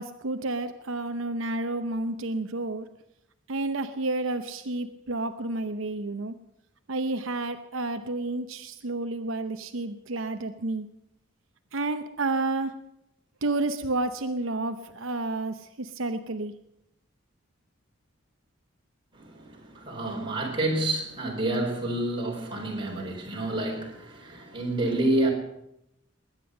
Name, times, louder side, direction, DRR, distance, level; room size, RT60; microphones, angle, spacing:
voice 1, 0.0-2.9 3.5-6.3 6.9-10.9 11.7-12.7 13.4-16.5, right 2 dB, 80° right, 8 dB, 0.8 m, -30 dB
voice 2, 19.1-25.3, right 1 dB, 25° right, -1 dB, 4.3 m, -29 dB
20.5 x 9.8 x 6.5 m, 0.80 s
head